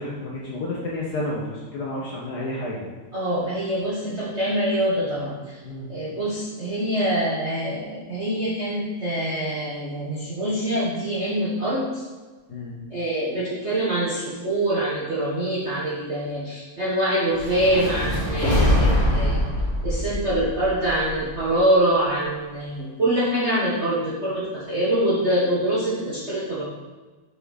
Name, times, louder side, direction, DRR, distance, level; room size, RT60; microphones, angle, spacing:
voice 1, 0.0-2.9 5.6-5.9 12.5-12.8, left 1 dB, 55° left, -5 dB, 1.4 m, -31 dB
voice 2, 3.1-5.6 5.9-12.0 12.9-19.4 19.8-26.6, right 1 dB, 35° right, -9 dB, 1.4 m, -24 dB
sound 1, 17.3-21.6, left 1 dB, 25° left, 2.0 m, -23 dB
6.3 x 6.2 x 4.0 m, 1.3 s
omnidirectional pair, 2.3 m